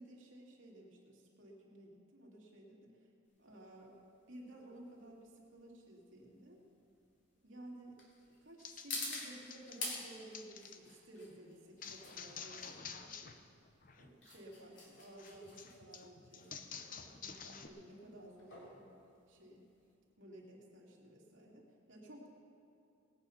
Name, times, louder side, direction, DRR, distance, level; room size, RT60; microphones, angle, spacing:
voice 1, 0.0-3.1 3.4-4.0 4.3-6.6 7.4-8.0 8.2-13.3 14.0-18.9 19.3-19.7 20.2-22.3, right 1 dB, 70° right, -2 dB, 2.6 m, -55 dB
sound 1, 3.3-19.9, left 3 dB, 60° left, 3.2 m, -49 dB
sound 2, 8.6-10.8 11.8-13.4 13.7-14.1 15.2-17.7, left 6 dB, 40° left, 0.7 m, -50 dB
18.5 x 9.0 x 5.7 m, 2.7 s
head